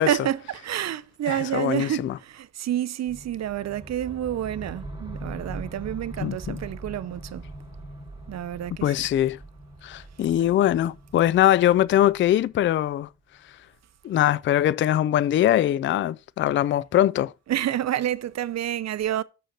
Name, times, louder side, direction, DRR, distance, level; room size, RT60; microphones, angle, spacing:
voice 1, 0.0-7.4 8.3-9.1 17.5-19.2, right 11 dB, 40° right, 0.7 m, -29 dB
voice 2, 1.3-2.1 6.2-6.6 8.8-9.4 9.8-13.1 14.0-17.3, left 12 dB, 30° left, 0.4 m, -22 dB
sound 1, 3.1-13.1, right 1 dB, 10° right, 2.7 m, -41 dB
6.6 x 6.3 x 5.7 m
hypercardioid pair, 60°, 41 cm